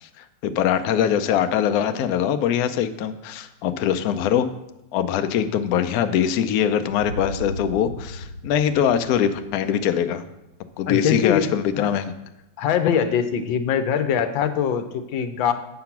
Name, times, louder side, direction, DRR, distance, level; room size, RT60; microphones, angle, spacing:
voice 1, 0.4-4.5 4.9-10.2 10.8-12.1, left 9 dB, 70° left, 9 dB, 0.9 m, -22 dB
sound 1, 6.9-10.9, left 1 dB, 50° left, 4.4 m, -37 dB
voice 2, 10.9-11.9 12.6-15.5, left 8 dB, 90° left, 9 dB, 1.4 m, -23 dB
7.6 x 5.9 x 5.8 m, 0.93 s
omnidirectional pair, 2.1 m